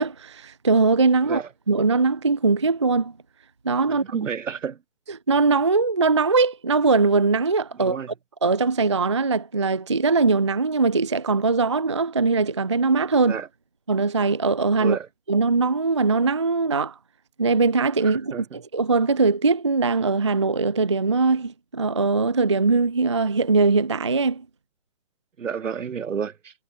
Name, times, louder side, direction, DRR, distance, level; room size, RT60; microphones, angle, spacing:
voice 1, 0.0-1.4 1.7-3.1 3.6-4.0 5.3-8.0 8.4-13.4 13.9-15.0 15.3-17.0 17.4-24.4, right 4 dB, 25° right, 0.5 m, -21 dB
voice 2, 3.9-4.8 7.7-8.1 13.2-13.5 14.8-15.1 18.0-18.6 25.4-26.5, right 7 dB, 80° right, 7.4 m, -31 dB
hypercardioid pair, 175°, 38 cm